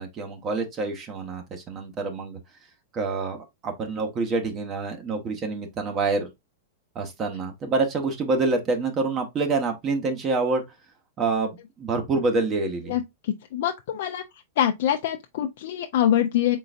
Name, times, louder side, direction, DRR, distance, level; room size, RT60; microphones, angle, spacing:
voice 1, 0.0-2.4 2.9-6.3 6.9-10.6 11.2-13.0, right 3 dB, 30° right, 1.0 m, -27 dB
voice 2, 12.9-14.2 14.6-16.6, left 11 dB, 65° left, 0.5 m, -24 dB
3.9 x 3.8 x 2.5 m
hypercardioid pair, 125°, 0 cm